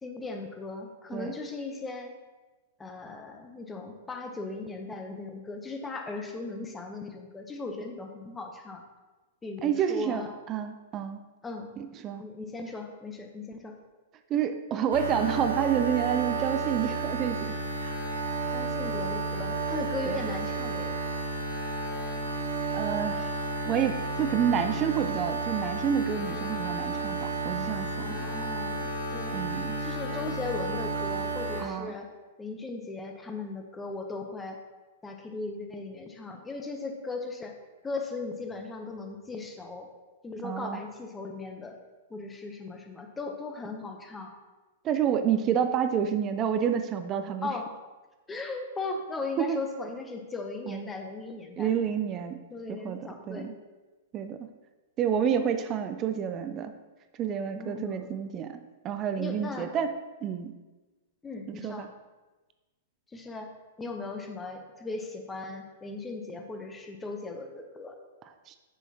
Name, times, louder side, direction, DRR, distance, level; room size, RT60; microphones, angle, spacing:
voice 1, 0.0-2.1 2.8-8.8 9.4-10.4 11.4-11.7 12.2-13.8 18.5-21.0 28.0-32.1 32.4-34.6 35.0-37.5 37.8-39.9 40.2-41.8 42.1-44.3 47.4-47.7 48.3-51.7 52.5-53.5 57.5-58.1 59.2-59.7 61.2-61.8 63.1-63.5 63.8-68.0, left 3 dB, 15° left, 4 dB, 0.8 m, -37 dB
voice 2, 9.6-11.2 11.8-12.2 14.3-17.5 17.8-17.9 20.1-20.3 22.7-23.4 23.7-28.3 29.3-29.8 31.6-32.0 40.4-40.8 44.8-47.5 49.4-49.6 50.7-50.9 51.6-52.4 52.7-53.0 53.3-53.5 54.1-54.4 55.0-56.7 57.2-58.6 58.8-59.9 60.2-60.5 61.5-61.9 68.5-68.6, right 8 dB, 30° right, 8 dB, 0.4 m, -29 dB
sound 1, 14.9-31.6, right 3 dB, 90° right, 1.8 m, -32 dB
6.9 x 6.1 x 2.9 m, 1.2 s
figure-of-eight pair, 105°, 0 cm